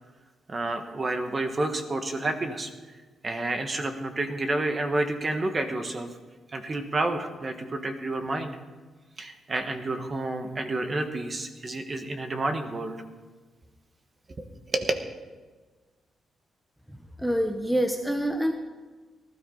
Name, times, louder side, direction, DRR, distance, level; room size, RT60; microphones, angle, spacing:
voice 1, 0.5-2.7 3.2-6.1 6.5-8.5 9.2-13.0 14.7-14.9, right 2 dB, 30° right, 6 dB, 1.3 m, -29 dB
voice 2, 16.9-18.5, equal, ahead, 5 dB, 0.9 m, -27 dB
18.5 x 13.0 x 3.9 m, 1.3 s
cardioid pair, 130°, 0 cm